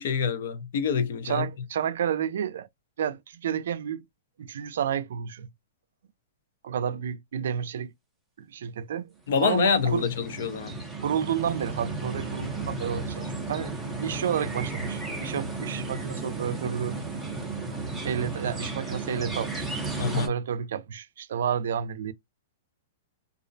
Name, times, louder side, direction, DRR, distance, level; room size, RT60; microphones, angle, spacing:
voice 1, 0.0-1.4 9.3-10.8 20.0-20.3, left 6 dB, 55° left, 0.5 m, -26 dB
voice 2, 1.2-2.7 3.0-4.0 4.4-5.5 6.6-7.9 8.4-9.1 9.4-10.1 11.0-13.7 14.0-17.0 18.0-19.7 20.1-22.1, right 8 dB, 65° right, 0.4 m, -30 dB
sound 1, 9.4-20.3, right 3 dB, ahead, 0.6 m, -34 dB
2.4 x 2.0 x 2.5 m
hypercardioid pair, 175°, 0 cm